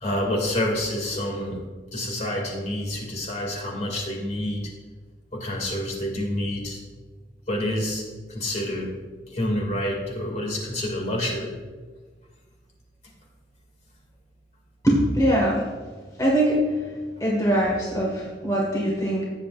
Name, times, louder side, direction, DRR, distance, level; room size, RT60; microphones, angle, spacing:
voice 1, 0.0-1.6 1.9-4.7 5.3-6.8 7.5-8.0 8.3-8.9 9.3-11.5, left 1 dB, 40° left, 0 dB, 2.3 m, -28 dB
voice 2, 14.8-15.7 16.2-16.6 17.2-19.2, right 1 dB, 20° left, -4 dB, 1.7 m, -22 dB
16.5 x 8.1 x 2.5 m, 1.4 s
head